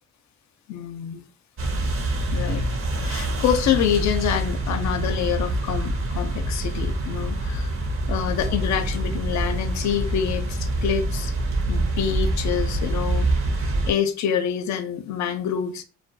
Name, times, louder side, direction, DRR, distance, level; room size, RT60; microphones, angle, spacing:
voice 1, 0.7-1.3 2.3-2.7 3.0-7.7 8.1-11.3 11.7-13.3 13.9-15.8, left 9 dB, 70° left, 0.5 m, -26 dB
sound 1, 1.6-13.9, right 1 dB, 45° right, 0.6 m, -25 dB
2.2 x 2.1 x 2.6 m
cardioid pair, 90°, 30 cm